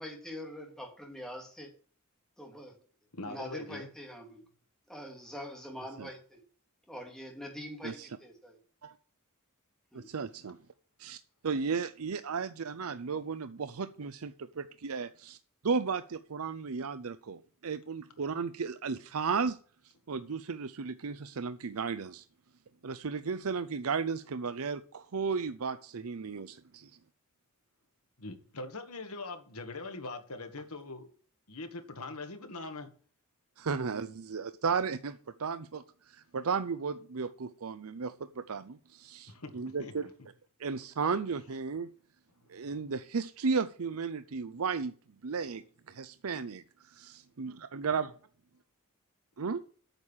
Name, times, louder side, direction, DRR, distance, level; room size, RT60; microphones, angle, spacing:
voice 1, 0.0-1.7 2.4-2.8 3.2-4.4 4.9-6.4 6.9-8.6 9.9-10.1, equal, ahead, 2.8 m, -44 dB
voice 2, 3.1-3.9 28.2-31.1 31.5-32.9 39.3-40.1 41.5-41.6 42.4-42.6, left 2 dB, 90° left, 1.9 m, -42 dB
voice 3, 9.9-10.6 11.0-15.4 15.6-19.6 20.1-22.2 22.8-26.9 33.6-40.1 40.6-41.9 42.5-44.9 45.2-48.1 49.4-49.6, right 5 dB, 75° right, 0.6 m, -34 dB
9.0 x 6.5 x 7.2 m
head